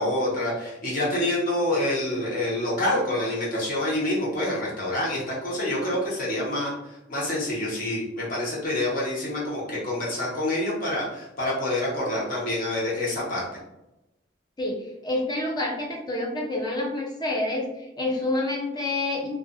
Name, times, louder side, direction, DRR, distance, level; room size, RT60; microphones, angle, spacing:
voice 1, 0.0-13.5, left 1 dB, 50° left, -6 dB, 1.0 m, -27 dB
voice 2, 14.6-19.4, left 2 dB, 25° left, 0 dB, 0.5 m, -28 dB
2.4 x 2.3 x 2.4 m, 0.92 s
head